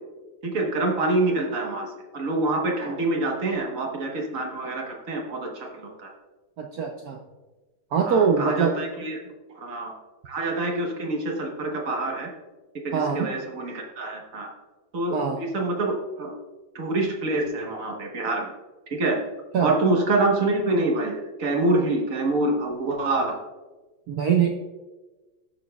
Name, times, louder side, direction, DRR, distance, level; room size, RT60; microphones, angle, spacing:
voice 1, 0.4-6.1 8.1-9.2 9.5-9.9 10.2-12.3 12.8-14.5 14.9-16.3 16.7-18.5 18.9-19.2 19.6-23.3, right 2 dB, 45° right, 1 dB, 1.4 m, -26 dB
voice 2, 6.6-7.2 7.9-8.7 12.9-13.3 15.1-15.4 19.5-19.7 24.1-24.5, right 6 dB, 70° right, 2 dB, 0.9 m, -23 dB
13.0 x 6.5 x 2.3 m, 1.2 s
omnidirectional pair, 2.3 m